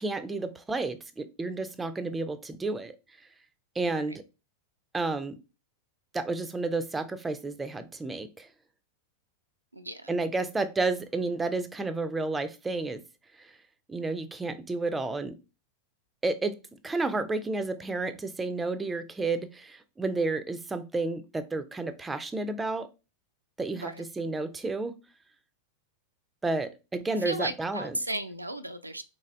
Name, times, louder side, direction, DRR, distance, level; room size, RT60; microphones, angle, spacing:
voice 1, 0.0-2.9 3.8-4.2 4.9-5.4 6.1-8.5 10.1-13.0 13.9-15.4 16.2-16.6 16.8-22.9 23.6-24.9 26.4-28.0, right 3 dB, 10° right, 0.4 m, -31 dB
voice 2, 9.7-10.1 23.7-24.0 27.2-29.0, right 1 dB, 85° right, 0.4 m, -35 dB
3.7 x 3.1 x 2.5 m
figure-of-eight pair, 90°, 0 cm